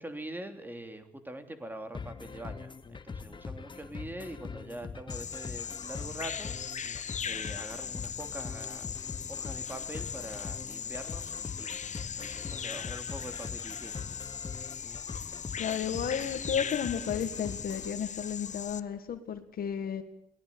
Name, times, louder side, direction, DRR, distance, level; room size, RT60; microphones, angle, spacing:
voice 1, 0.0-6.6 7.2-8.9 9.3-11.7 12.0-14.0, right 1 dB, 10° right, 7 dB, 3.0 m, -43 dB
sound 1, 1.9-17.9, left 5 dB, 30° left, 1.3 m, -43 dB
Bird vocalization bird call bird song, 5.1-18.8, left 7 dB, 50° left, 1.1 m, -39 dB
voice 2, 15.6-20.0, left 8 dB, 75° left, 7 dB, 1.8 m, -33 dB
22.5 x 19.0 x 8.7 m, 0.74 s
wide cardioid pair, 130°, 15 cm